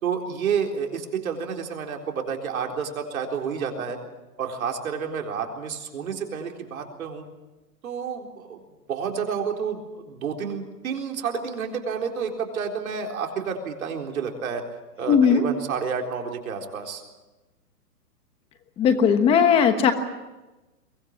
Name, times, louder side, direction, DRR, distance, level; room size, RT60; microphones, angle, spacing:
voice 1, 0.0-4.0 4.4-7.2 7.8-8.6 8.9-14.6 15.0-17.0, right 6 dB, 60° right, 2 dB, 4.0 m, -30 dB
voice 2, 15.1-15.4 18.8-19.9, left 7 dB, 10° left, 9 dB, 1.1 m, -18 dB
23.0 x 18.5 x 7.7 m, 1.1 s
hypercardioid pair, 155°, 47 cm